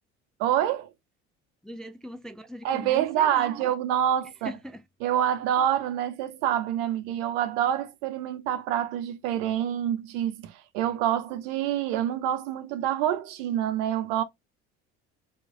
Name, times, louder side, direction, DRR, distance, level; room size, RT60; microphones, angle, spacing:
voice 1, 0.4-0.9 2.6-4.5 5.0-14.2, right 10 dB, 65° right, 0.7 m, -27 dB
voice 2, 1.6-3.7 4.4-4.8 5.6-5.7, equal, ahead, 0.4 m, -40 dB
3.0 x 2.4 x 3.6 m
hypercardioid pair, 60°, 34 cm